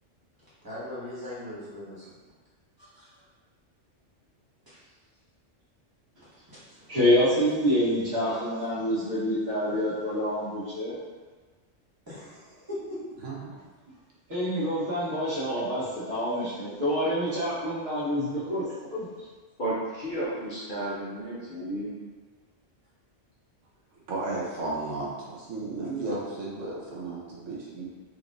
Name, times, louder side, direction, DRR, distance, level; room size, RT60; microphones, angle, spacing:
voice 1, 0.6-2.0 2.8-3.1 4.7-4.9 6.5-7.0 12.1-13.0, left 1 dB, 20° right, -10 dB, 1.2 m, -40 dB
voice 2, 6.9-11.0 14.3-18.6 18.9-19.1, equal, 55° right, -10 dB, 1.5 m, -27 dB
voice 3, 13.2-13.5 24.1-27.9, right 2 dB, 80° right, -5 dB, 1.2 m, -34 dB
voice 4, 19.6-21.9, right 1 dB, 50° left, -8 dB, 0.8 m, -32 dB
3.9 x 3.1 x 2.5 m, 1.4 s
omnidirectional pair, 1.3 m